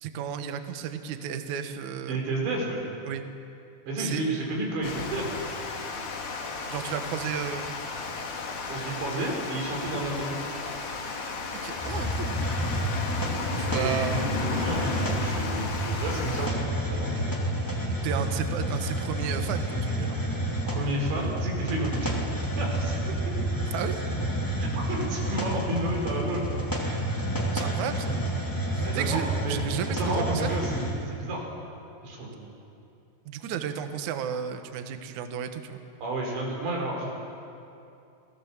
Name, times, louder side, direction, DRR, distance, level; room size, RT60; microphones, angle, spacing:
voice 1, 0.0-2.2 3.0-3.2 4.0-4.3 6.7-7.7 11.6-12.4 13.2-14.6 17.9-20.2 23.7-24.0 27.5-28.2 28.7-30.5 33.2-35.8, right 8 dB, 85° right, 7 dB, 1.6 m, -33 dB
voice 2, 2.1-2.8 3.9-5.4 8.7-10.4 13.7-14.3 14.6-17.1 20.7-22.2 22.6-22.9 23.3-23.4 24.7-26.5 28.8-29.6 30.0-31.4 32.0-32.4 36.0-37.1, right 1 dB, 65° right, -1 dB, 6.9 m, -31 dB
Water, 4.8-16.5, left 4 dB, 50° left, 2.9 m, -34 dB
Hiss, 11.8-31.0, right 1 dB, 10° left, 1.1 m, -29 dB
30.0 x 19.5 x 7.3 m, 2.6 s
omnidirectional pair, 5.5 m